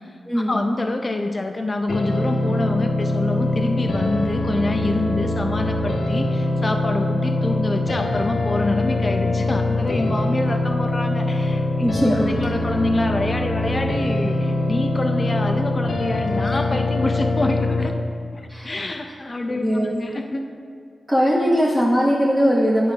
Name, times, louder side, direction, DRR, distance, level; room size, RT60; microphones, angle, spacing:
voice 1, 0.4-11.6 12.4-17.9 18.3-20.5, left 2 dB, 30° left, 4 dB, 0.3 m, -26 dB
sound 1, 1.9-17.9, left 2 dB, 60° left, 0.7 m, -23 dB
voice 2, 11.8-12.3 18.5-18.8 19.6-20.0 21.1-22.9, equal, 10° right, -5 dB, 0.7 m, -20 dB
11.0 x 4.6 x 3.2 m, 2.2 s
wide cardioid pair, 140°, 0 cm